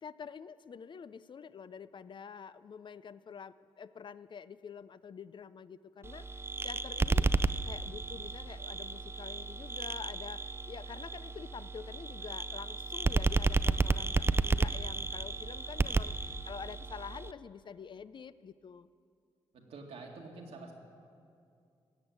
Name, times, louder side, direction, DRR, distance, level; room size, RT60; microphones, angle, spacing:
voice 1, 0.0-7.3 7.6-18.9, left 6 dB, 50° left, 15 dB, 0.4 m, -47 dB
sound 1, 6.0-17.3, right 3 dB, 25° right, 0.4 m, -32 dB
voice 2, 19.5-20.7, right 3 dB, 75° right, 0 dB, 2.0 m, -47 dB
16.5 x 7.2 x 9.4 m, 2.4 s
supercardioid pair, 55°, 11 cm